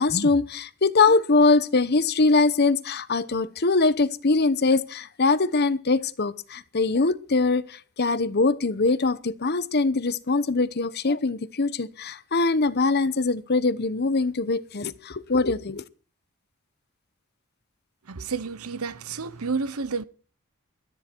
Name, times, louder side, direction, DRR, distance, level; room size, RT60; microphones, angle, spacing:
voice 1, 0.0-15.8, left 3 dB, 50° left, 0.9 m, -22 dB
voice 2, 18.1-20.0, right 4 dB, 90° right, 0.9 m, -30 dB
17.5 x 13.0 x 4.6 m
head